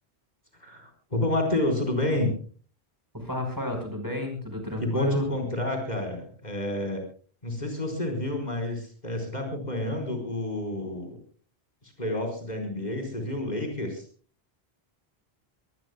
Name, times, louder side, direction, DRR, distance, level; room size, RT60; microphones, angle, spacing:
voice 1, 0.6-2.3 4.8-7.0 7.4-11.2 11.8-14.0, left 1 dB, 40° left, 4 dB, 4.7 m, -29 dB
voice 2, 3.1-5.2, left 1 dB, 20° right, 4 dB, 4.9 m, -31 dB
23.5 x 19.5 x 2.2 m, 0.41 s
omnidirectional pair, 1.1 m